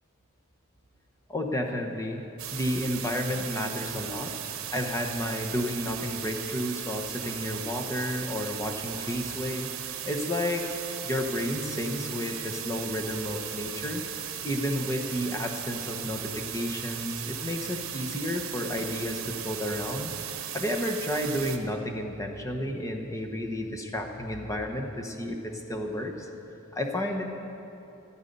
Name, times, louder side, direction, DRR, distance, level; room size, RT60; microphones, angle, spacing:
voice 1, 1.3-2.2 2.5-4.4 4.7-10.7 11.0-14.0 14.4-20.1 20.5-26.3 26.7-27.2, left 1 dB, 15° left, 3 dB, 1.0 m, -31 dB
sound 1, 2.4-21.6, right 9 dB, 65° right, 1.0 m, -37 dB
14.0 x 12.5 x 5.4 m, 3.0 s
head